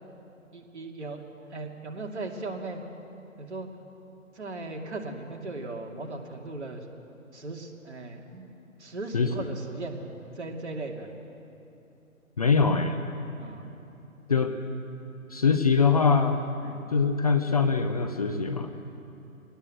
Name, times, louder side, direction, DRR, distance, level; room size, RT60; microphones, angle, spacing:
voice 1, 0.5-1.2 1.5-2.9 3.4-3.7 4.3-6.8 7.3-8.5 8.8-10.0 10.4-11.1 13.4-13.6 16.6-16.8, right 2 dB, 50° right, 2 dB, 2.7 m, -37 dB
voice 2, 12.4-13.0 14.3-14.6 15.3-16.4 16.9-18.7, left 5 dB, 25° left, 7 dB, 0.8 m, -23 dB
23.5 x 18.5 x 7.9 m, 2.9 s
figure-of-eight pair, 140°, 42 cm